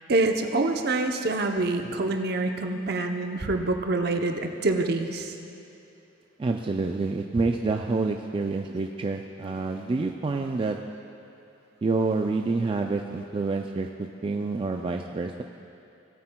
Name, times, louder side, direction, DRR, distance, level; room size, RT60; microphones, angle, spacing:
voice 1, 0.1-5.3, right 2 dB, 55° right, 4 dB, 0.7 m, -26 dB
voice 2, 6.4-10.8 11.8-15.4, right 3 dB, 30° right, 3 dB, 0.3 m, -28 dB
18.5 x 8.5 x 2.2 m, 2.7 s
head